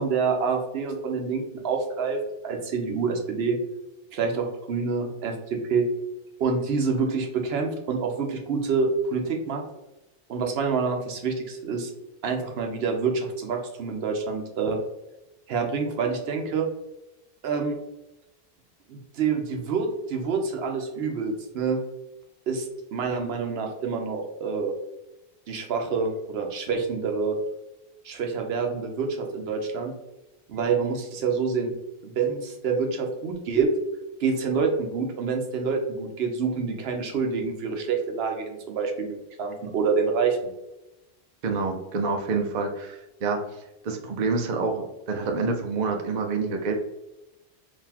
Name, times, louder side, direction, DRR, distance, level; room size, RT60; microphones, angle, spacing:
voice 1, 0.0-3.6 4.1-5.9 6.4-9.6 10.3-11.9 12.2-14.8 15.5-16.7 17.4-17.8 18.9-21.8 22.5-24.7 25.5-27.4 28.0-29.9 30.5-31.7 32.0-33.7 34.2-40.5, right 5 dB, 75° right, 3 dB, 0.9 m, -27 dB
voice 2, 41.4-46.7, right 4 dB, 55° right, 3 dB, 0.6 m, -28 dB
3.8 x 2.7 x 2.8 m, 0.95 s
omnidirectional pair, 1.1 m